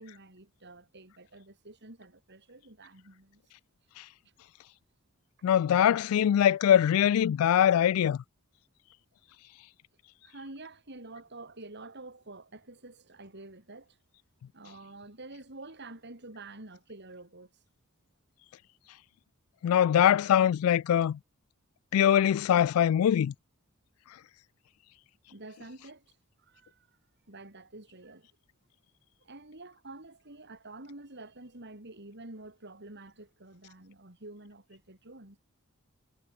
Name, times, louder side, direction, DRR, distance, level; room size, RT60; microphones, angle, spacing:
voice 1, 0.0-3.4 10.2-14.0 14.5-17.5 25.3-26.9 27.3-28.3 29.2-35.4, right 2 dB, 55° right, 4.7 m, -48 dB
voice 2, 5.4-8.2 19.6-21.2 21.9-23.3, left 9 dB, 80° left, 0.3 m, -23 dB
head